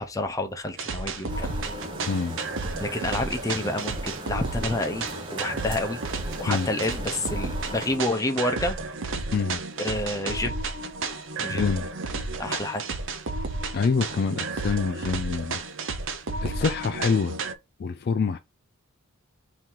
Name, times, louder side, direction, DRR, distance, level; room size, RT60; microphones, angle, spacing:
voice 1, 0.0-1.6 2.8-6.0 6.4-8.8 9.8-10.5 11.4-11.7 12.4-12.8, left 1 dB, 15° left, 0.7 m, -29 dB
sound 1, 0.8-17.5, right 3 dB, 60° right, 0.6 m, -32 dB
sound 2, 1.3-8.0, right 1 dB, 20° right, 0.7 m, -39 dB
voice 2, 2.1-2.4 6.5-6.7 9.3-9.6 11.5-11.9 13.7-15.6 16.4-17.4 17.8-18.4, left 5 dB, 45° left, 0.3 m, -26 dB
3.7 x 2.8 x 4.6 m
head